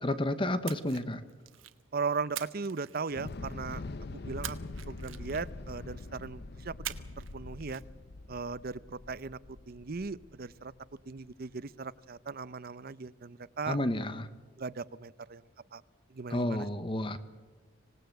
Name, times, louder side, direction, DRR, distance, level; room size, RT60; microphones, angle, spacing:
voice 1, 0.0-1.2 13.7-14.3 16.3-17.2, left 1 dB, 25° left, 12 dB, 0.9 m, -31 dB
Splash splatter, 0.6-1.8 2.3-3.5 4.4-5.7 6.8-7.3 7.6-7.8, right 12 dB, 85° right, 1.3 m, -43 dB
voice 2, 1.9-3.8 4.1-4.6 4.9-6.7 7.2-7.8 8.3-9.4 9.7-10.7 11.1-13.8 14.6-15.4 15.7-15.8 16.1-16.7, right 4 dB, 50° right, 17 dB, 0.6 m, -37 dB
Thunder / Explosion, 3.1-11.3, left 2 dB, 55° left, 0.7 m, -44 dB
26.0 x 18.5 x 7.9 m, 1.4 s
head